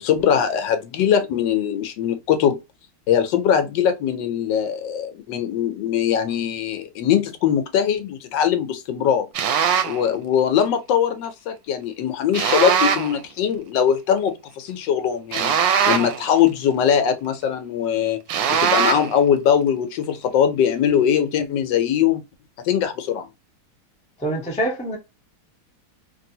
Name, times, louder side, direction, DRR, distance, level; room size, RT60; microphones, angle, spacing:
voice 1, 0.0-2.6 3.1-9.3 9.8-15.6 15.9-18.2 18.5-22.2 22.6-23.3, left 8 dB, 80° left, 1.3 m, -21 dB
sound 1, 9.3-10.0 12.3-13.2 15.3-16.3 18.3-19.2, right 7 dB, 85° right, 1.3 m, -21 dB
voice 2, 24.2-25.0, right 1 dB, 10° left, 0.4 m, -25 dB
3.3 x 2.6 x 2.7 m
omnidirectional pair, 2.0 m